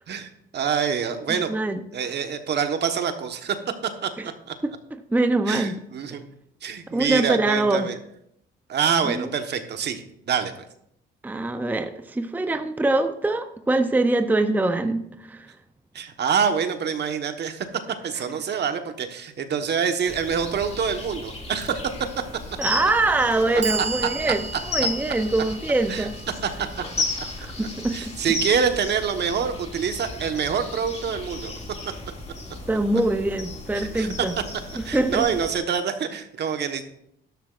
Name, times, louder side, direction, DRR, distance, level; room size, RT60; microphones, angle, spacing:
voice 1, 0.1-1.5 1.9-3.6 4.0-4.1 4.5-4.6 5.5-6.3 6.6-8.0 8.7-10.5 15.9-17.7 18.0-21.8 23.8-23.9 25.9-26.1 27.2-27.3 27.9-31.5 33.7-34.1 34.8-36.8, right 7 dB, 60° right, 7 dB, 1.2 m, -26 dB
voice 2, 1.3-1.8 4.2-4.3 4.6-5.8 6.9-7.9 9.0-9.3 11.2-15.5 22.6-26.2 27.4-28.2 32.7-34.4 34.9-35.3, right 2 dB, 10° right, 8 dB, 0.6 m, -24 dB
sound 1, 20.1-35.6, left 2 dB, 30° left, 2.2 m, -34 dB
Clock, 21.6-21.7 22.7-22.8 23.3-29.4, right 4 dB, 35° right, 0.9 m, -36 dB
13.0 x 11.5 x 2.5 m, 0.74 s
cardioid pair, 90°, 20 cm